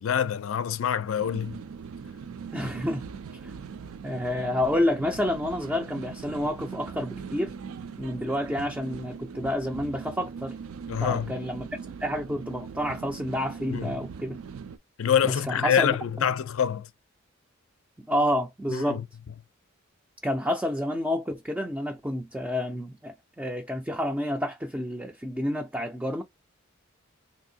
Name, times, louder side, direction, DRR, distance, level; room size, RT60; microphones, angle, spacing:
voice 1, 0.0-1.6 10.9-11.3 13.7-13.9 15.0-16.9 18.7-19.0, left 8 dB, 75° left, 0.4 m, -26 dB
sound 1, 1.2-14.8, right 6 dB, 85° right, 0.4 m, -40 dB
voice 2, 2.5-3.1 3.4-3.5 4.0-7.5 8.0-10.6 11.0-11.7 12.0-14.4 15.2-16.0 18.0-19.0 20.2-26.2, left 1 dB, 5° right, 0.3 m, -29 dB
3.5 x 2.7 x 2.7 m
head